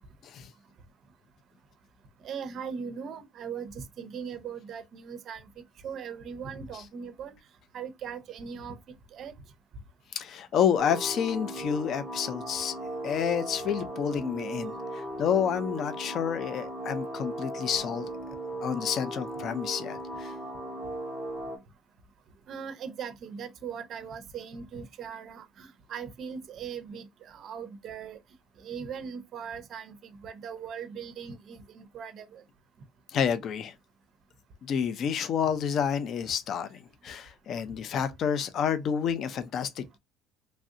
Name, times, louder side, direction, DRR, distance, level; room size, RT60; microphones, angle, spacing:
voice 1, 2.2-5.4 5.8-7.3 7.7-8.8 9.1-9.3 22.5-28.2 28.6-30.0 30.2-32.4, right 7 dB, 40° right, 0.5 m, -39 dB
voice 2, 10.1-12.7 13.0-18.1 18.6-20.3 33.1-33.7 34.6-40.0, left 8 dB, 40° left, 0.4 m, -29 dB
sound 1, 10.8-21.6, right 1 dB, 5° left, 0.7 m, -37 dB
3.1 x 2.7 x 2.5 m
cardioid pair, 170°, 0 cm